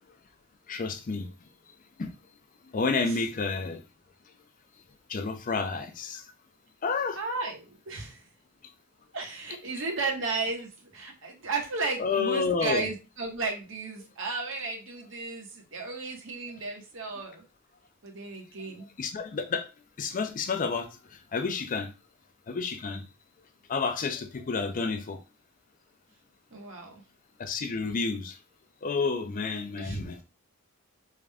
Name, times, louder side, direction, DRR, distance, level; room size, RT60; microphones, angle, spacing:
voice 1, 0.7-1.3 2.0-2.1 2.6-3.8 5.1-6.3 6.8-7.2 12.0-12.9 19.0-19.7 20.0-21.9 22.5-23.1 23.7-25.2 27.4-28.4 28.8-30.2, left 4 dB, 40° left, 0.4 m, -30 dB
voice 2, 7.2-8.3 9.1-17.4 18.0-18.9 26.5-27.0 29.8-30.0, right 3 dB, 65° right, 1.0 m, -34 dB
3.6 x 2.1 x 3.4 m
head